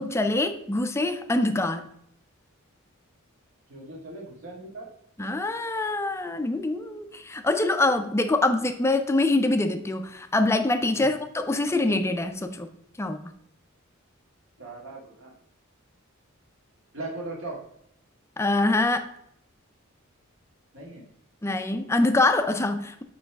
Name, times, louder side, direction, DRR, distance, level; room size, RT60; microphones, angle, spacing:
voice 1, 0.0-1.9 5.2-12.7 13.0-13.3 18.4-19.1 21.4-23.0, left 2 dB, 15° left, 0.4 m, -24 dB
voice 2, 3.7-4.9 10.9-11.1 14.6-15.3 16.9-17.6 20.7-21.0, right 2 dB, 65° right, 1.9 m, -38 dB
9.1 x 3.1 x 3.4 m
head